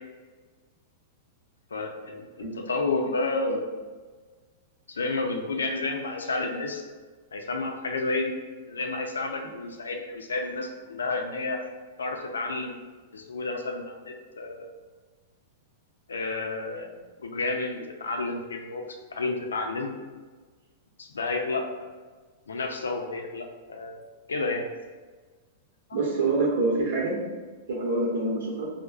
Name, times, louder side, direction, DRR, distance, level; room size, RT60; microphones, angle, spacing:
voice 1, 1.7-3.6 4.9-6.8 7.3-8.3 8.7-11.6 12.0-12.8 13.1-14.7 16.1-18.8 19.1-19.9 21.0-21.7 22.5-24.0 24.3-24.7 25.9-26.0, left 3 dB, 90° left, 3 dB, 0.4 m, -31 dB
voice 2, 25.9-27.1 27.7-28.7, right 3 dB, 75° right, -2 dB, 1.0 m, -26 dB
4.8 x 2.1 x 2.4 m, 1.4 s
hypercardioid pair, 115°, 0 cm